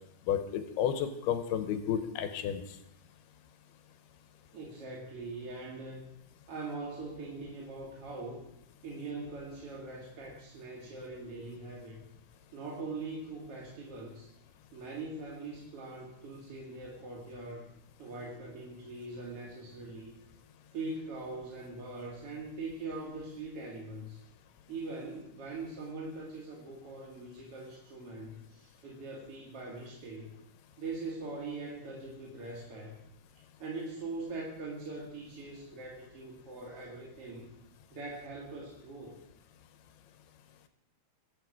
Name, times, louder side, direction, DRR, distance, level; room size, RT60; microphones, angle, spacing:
voice 1, 0.3-2.6, left 9 dB, 85° left, 9 dB, 3.0 m, -31 dB
voice 2, 4.5-6.1 6.5-8.4 8.8-12.0 12.5-14.3 14.7-17.7 18.0-20.1 20.7-24.2 24.7-30.3 30.8-32.9 33.6-37.6 37.9-39.2, right 3 dB, 45° right, -3 dB, 2.5 m, -42 dB
22.5 x 8.7 x 4.9 m, 0.80 s
omnidirectional pair, 4.6 m